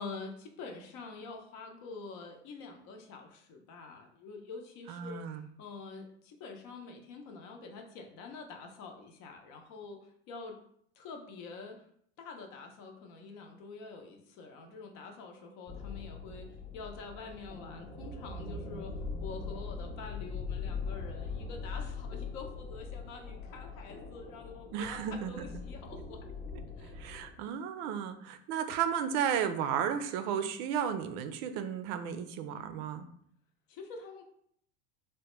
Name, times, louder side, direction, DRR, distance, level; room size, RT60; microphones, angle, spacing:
voice 1, 0.0-10.6 11.0-11.8 12.2-26.3 26.8-26.9 33.7-34.2, left 4 dB, 55° left, 4 dB, 0.7 m, -46 dB
voice 2, 4.9-5.5 24.7-25.4 27.0-33.1, right 8 dB, 60° right, 10 dB, 0.5 m, -34 dB
sound 1, 15.7-27.3, left 4 dB, 20° left, 0.5 m, -41 dB
3.4 x 2.2 x 3.0 m, 0.66 s
supercardioid pair, 105°, 33 cm